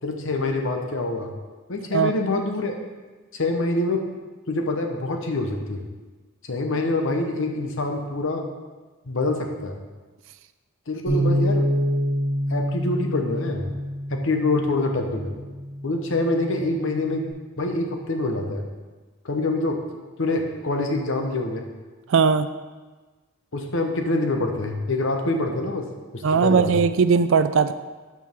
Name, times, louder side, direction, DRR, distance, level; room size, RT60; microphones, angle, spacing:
voice 1, 0.0-1.3 1.7-2.8 3.3-4.0 4.5-5.9 6.5-8.5 9.1-9.8 10.9-11.7 12.5-13.7 14.1-15.4 15.8-17.3 17.6-18.6 19.2-19.8 20.2-21.6 23.5-25.9 26.1-26.7, left 2 dB, 60° left, 3 dB, 0.9 m, -25 dB
Bass guitar, 11.1-17.3, equal, 10° left, 2.1 m, -27 dB
voice 2, 22.1-22.5 26.2-27.7, right 5 dB, 60° right, 12 dB, 0.3 m, -18 dB
12.0 x 4.7 x 3.6 m, 1.3 s
head